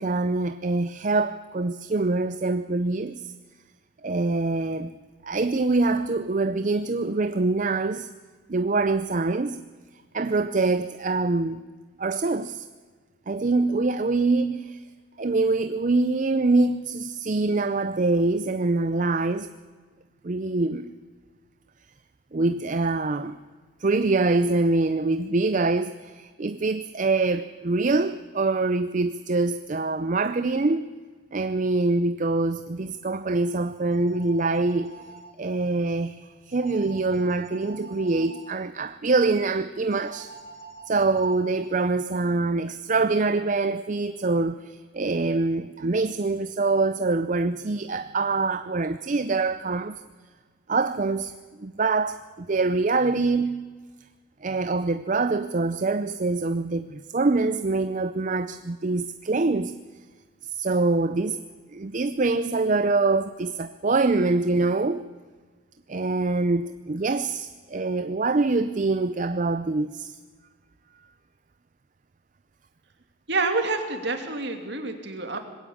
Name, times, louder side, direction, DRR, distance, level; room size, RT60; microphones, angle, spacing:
voice 1, 0.0-3.2 4.0-4.9 5.2-8.1 8.5-9.6 10.1-11.6 12.0-12.7 13.3-14.8 15.2-19.5 20.2-20.9 22.3-23.4 23.8-30.9 31.3-34.9 35.4-40.3 40.9-50.0 50.7-51.3 51.6-53.6 54.4-59.8 60.5-61.4 61.7-65.0 65.9-70.1, right 3 dB, 40° right, 0.5 m, -24 dB
sound 1, 33.3-35.2 36.5-38.5 39.9-41.9, right 3 dB, 70° left, 7.0 m, -46 dB
voice 2, 73.3-75.4, right 3 dB, 55° right, 2.5 m, -27 dB
20.5 x 16.5 x 8.5 m
head